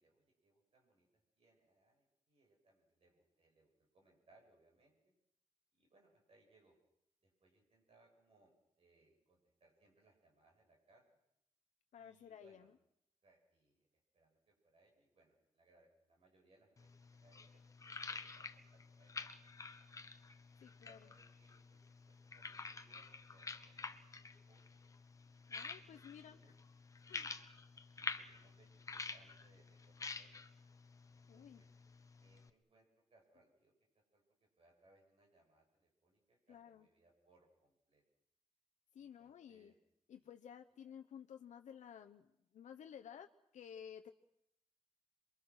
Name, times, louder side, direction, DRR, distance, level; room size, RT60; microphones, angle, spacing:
voice 1, 0.0-5.1 5.8-6.7 7.2-11.0 11.9-12.7 13.2-13.9 14.1-17.6 17.9-19.9 20.8-24.8 25.2-26.5 26.9-27.3 27.9-30.4 31.1-31.7 32.2-33.7 34.1-34.2 34.6-38.0 39.0-39.8 40.1-40.3, right 2 dB, 50° right, 1 dB, 7.6 m, -72 dB
voice 2, 11.9-12.7 20.6-21.1 25.5-26.4 27.1-27.3 31.3-31.6 36.5-36.9 38.9-39.7 40.1-43.3 43.5-44.1, left 8 dB, 90° left, 5 dB, 0.9 m, -54 dB
sound 1, 16.8-32.5, left 4 dB, 25° left, 1.0 m, -49 dB
27.5 x 23.0 x 6.4 m, 0.79 s
wide cardioid pair, 165°, 12 cm